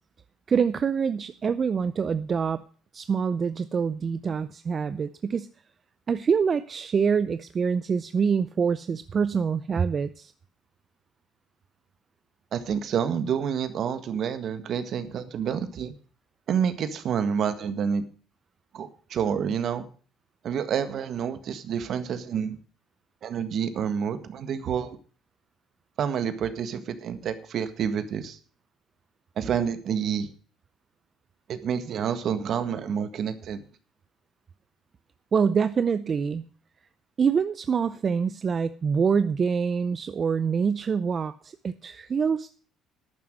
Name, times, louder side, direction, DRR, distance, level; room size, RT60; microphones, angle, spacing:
voice 1, 0.5-2.6 2.9-5.5 6.1-10.3 35.3-36.5 37.2-42.5, right 6 dB, 40° right, 13 dB, 0.6 m, -25 dB
voice 2, 12.5-15.9 16.5-18.0 18.7-19.8 20.4-22.6 23.2-25.0 26.0-28.4 29.4-30.3 31.5-33.6, right 7 dB, 55° right, 10 dB, 1.7 m, -28 dB
12.0 x 9.4 x 6.2 m, 0.42 s
cardioid pair, 95°, 0 cm